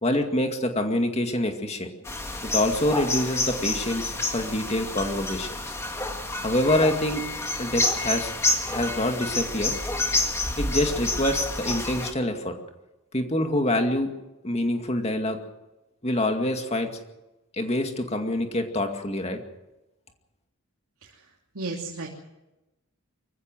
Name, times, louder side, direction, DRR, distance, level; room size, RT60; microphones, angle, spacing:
voice 1, 0.0-1.9 2.5-5.7 6.4-7.2 7.6-8.3 8.7-9.7 10.6-12.6 13.1-14.1 14.4-15.4 16.0-17.0 17.5-19.4, left 1 dB, 30° left, 5 dB, 2.2 m, -26 dB
sound 1, 2.1-12.1, left 2 dB, 10° left, 1.9 m, -29 dB
voice 2, 21.5-22.1, right 3 dB, 80° right, -1 dB, 3.0 m, -33 dB
24.5 x 15.5 x 7.6 m, 1.0 s
head